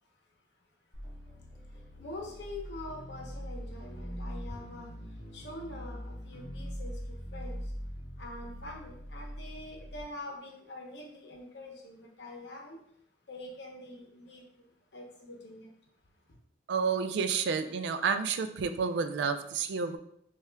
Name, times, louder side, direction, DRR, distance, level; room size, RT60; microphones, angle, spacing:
sound 1, 0.9-10.0, equal, 45° left, 1.0 m, -42 dB
voice 1, 1.0-7.7 8.2-12.8 13.3-15.7 16.3-16.4, left 1 dB, 70° left, 0 dB, 0.8 m, -45 dB
voice 2, 16.7-20.0, right 5 dB, 70° right, 9 dB, 0.3 m, -30 dB
5.4 x 2.4 x 2.2 m, 0.71 s
head